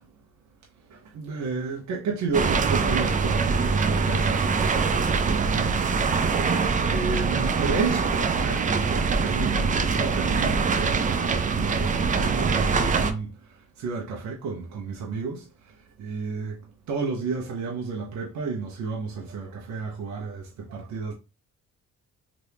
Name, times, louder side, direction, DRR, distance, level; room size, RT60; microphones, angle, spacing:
voice 1, 0.9-5.8 6.8-16.6 16.9-21.1, right 4 dB, 70° right, 0.7 m, -32 dB
sound 1, 2.3-13.1, right 5 dB, 25° right, 0.4 m, -23 dB
2.9 x 2.5 x 3.4 m
cardioid pair, 90°, 30 cm